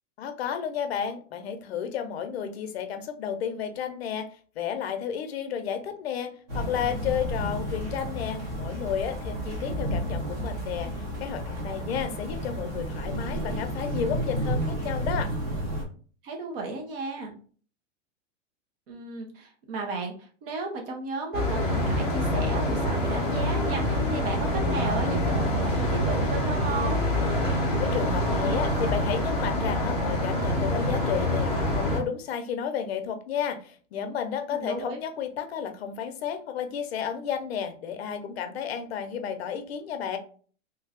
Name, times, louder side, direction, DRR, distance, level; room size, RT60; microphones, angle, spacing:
voice 1, 0.2-4.3 4.6-15.3 27.8-40.2, left 8 dB, 55° left, 7 dB, 0.6 m, -32 dB
sound 1, 6.5-15.8, equal, 15° right, 0.4 m, -31 dB
voice 2, 16.2-17.3 18.9-27.0 34.5-35.0, right 3 dB, 45° right, 1 dB, 0.8 m, -34 dB
sound 2, 21.3-32.0, left 1 dB, ahead, 0.8 m, -26 dB
3.2 x 2.3 x 3.5 m, 0.42 s
supercardioid pair, 170°, 38 cm